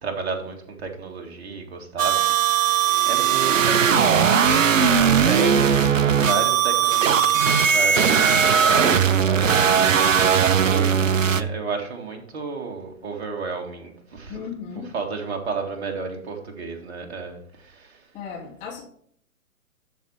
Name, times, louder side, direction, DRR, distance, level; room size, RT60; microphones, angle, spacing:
voice 1, 0.0-2.7 3.1-9.6 10.6-14.4 14.9-18.1, right 4 dB, 50° right, 3 dB, 2.2 m, -32 dB
sound 1, 2.0-11.4, right 7 dB, 65° right, 0.8 m, -18 dB
voice 2, 14.3-14.9 18.1-18.8, left 6 dB, 15° left, -7 dB, 2.5 m, -35 dB
12.5 x 4.3 x 4.5 m, 0.63 s
figure-of-eight pair, 120°, 42 cm